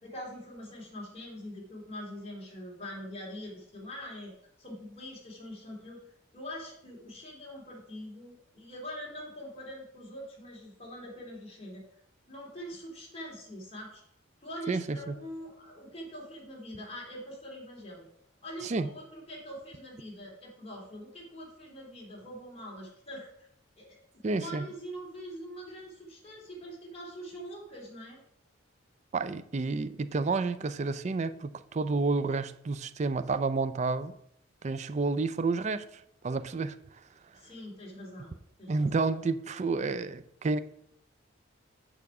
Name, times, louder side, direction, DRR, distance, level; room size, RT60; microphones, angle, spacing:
voice 1, 0.0-4.3 4.6-6.0 6.3-11.8 12.3-14.0 14.4-18.1 18.4-23.5 23.8-28.2 37.3-39.0, equal, 30° left, 2.6 m, -44 dB
voice 2, 14.7-15.2 18.6-18.9 24.2-24.7 29.1-34.1 34.6-36.8 38.7-40.6, right 3 dB, 35° right, 0.4 m, -30 dB
6.9 x 6.4 x 4.8 m
head